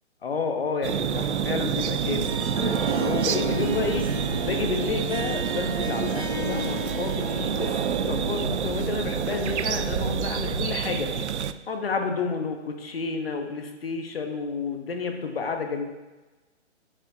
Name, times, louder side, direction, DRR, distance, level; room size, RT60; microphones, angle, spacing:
voice 1, 0.2-4.1 4.4-11.3 11.7-15.8, left 4 dB, 55° left, 5 dB, 1.1 m, -30 dB
sound 1, 0.8-11.5, right 8 dB, 70° right, 0.5 m, -28 dB
Harp, 2.2-10.7, left 1 dB, 30° right, 0.8 m, -36 dB
sound 2, 3.8-10.9, right 1 dB, 35° left, 2.1 m, -36 dB
7.3 x 7.0 x 2.8 m, 1.2 s
hypercardioid pair, 175°, 36 cm